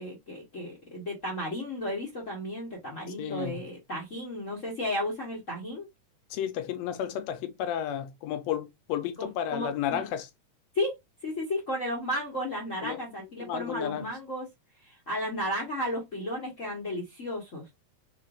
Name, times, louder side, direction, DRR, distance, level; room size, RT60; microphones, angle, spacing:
voice 1, 0.0-5.9 9.2-10.1 10.7-10.9 11.2-14.5 14.8-17.6, left 1 dB, 45° left, 1.0 m, -33 dB
voice 2, 3.2-3.6 6.3-10.3 12.8-13.0 13.4-14.0, left 10 dB, 75° left, 1.7 m, -32 dB
4.4 x 4.0 x 2.4 m
omnidirectional pair, 3.5 m